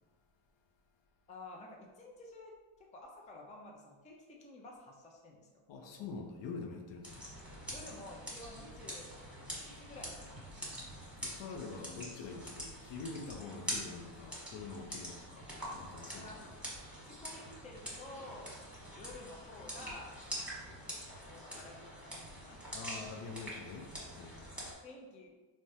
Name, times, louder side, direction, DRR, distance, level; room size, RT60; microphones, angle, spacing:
voice 1, 1.3-2.5 2.9-6.2 7.7-9.1 9.6-10.8 16.1-16.5 16.9-18.6 19.0-22.6 24.8-25.3, left 2 dB, 15° left, 0 dB, 0.4 m, -52 dB
voice 2, 5.7-7.2 11.2-16.3 22.7-24.5, left 4 dB, 60° left, 3 dB, 0.6 m, -45 dB
sound 1, 7.0-24.7, equal, ahead, 1.1 m, -45 dB
3.4 x 2.1 x 2.7 m, 1.3 s
cardioid pair, 85°, 50 cm